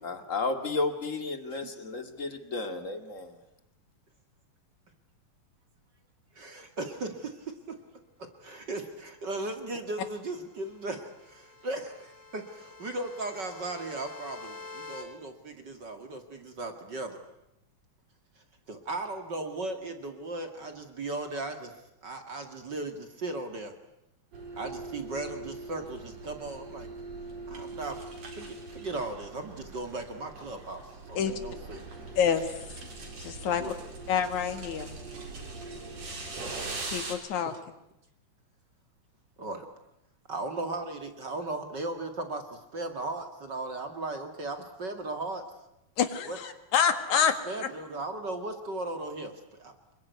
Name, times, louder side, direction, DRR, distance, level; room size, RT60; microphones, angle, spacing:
voice 1, 0.0-3.3, left 3 dB, 30° left, 8 dB, 2.1 m, -33 dB
voice 2, 6.3-7.8 8.2-17.2 18.7-21.8 22.0-23.7 24.6-26.9 27.5-28.1 28.3-30.8 31.1-31.8 33.5-33.8 37.4-37.6 39.4-39.7 40.3-45.5 46.2-46.4 47.1-47.2 47.5-49.7, right 2 dB, 40° right, 6 dB, 2.4 m, -37 dB
sound 1, 10.1-15.0, left 3 dB, 50° left, 5.5 m, -47 dB
sound 2, 24.3-37.2, right 3 dB, 60° right, 5.3 m, -41 dB
voice 3, 33.2-33.6 34.1-35.0 36.9-37.5 46.0-47.7, left 7 dB, 75° left, 9 dB, 3.2 m, -27 dB
26.5 x 22.5 x 9.5 m, 0.85 s
omnidirectional pair, 3.4 m